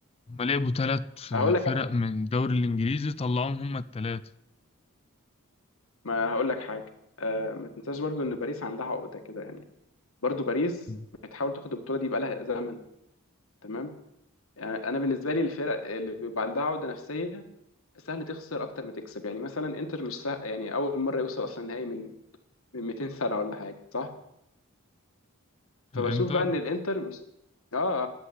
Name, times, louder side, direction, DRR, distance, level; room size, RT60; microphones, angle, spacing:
voice 1, 0.3-4.2 10.9-11.0 25.9-26.5, left 3 dB, 30° left, 0.4 m, -29 dB
voice 2, 6.0-6.8 7.2-9.6 10.2-10.8 11.3-12.8 13.6-13.9 14.6-17.4 18.1-22.1 22.7-24.1 25.9-27.2 27.7-28.1, left 2 dB, 70° left, 1.7 m, -30 dB
11.5 x 7.7 x 9.6 m
head